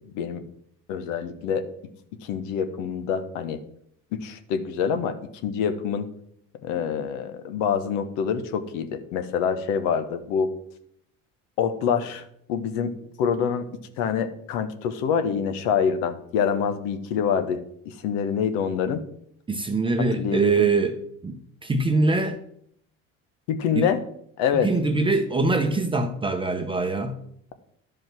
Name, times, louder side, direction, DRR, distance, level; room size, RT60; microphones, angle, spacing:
voice 1, 0.9-1.6 2.2-3.6 4.1-5.2 5.4-6.1 6.6-10.5 11.6-13.7 14.0-19.0 20.2-20.5 23.5-24.0 24.4-24.7, left 7 dB, 80° left, 1.2 m, -26 dB
voice 2, 19.5-22.4 23.7-23.9 24.6-27.2, right 3 dB, 15° right, 0.8 m, -23 dB
11.5 x 5.2 x 6.1 m
supercardioid pair, 115°, 31 cm